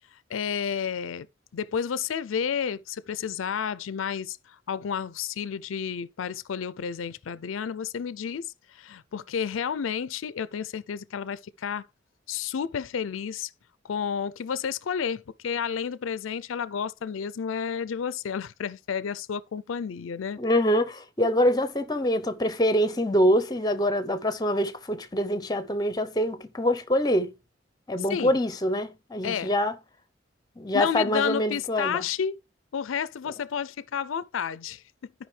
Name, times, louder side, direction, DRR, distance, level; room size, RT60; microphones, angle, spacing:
voice 1, 0.3-1.3 1.5-11.9 12.3-13.5 13.8-20.4 28.1-28.4 29.2-29.5 30.7-32.4 32.7-35.1, left 7 dB, 90° left, 0.4 m, -31 dB
voice 2, 20.4-27.3 27.9-29.7 30.6-32.0, equal, 20° left, 0.7 m, -25 dB
13.0 x 5.2 x 3.3 m
head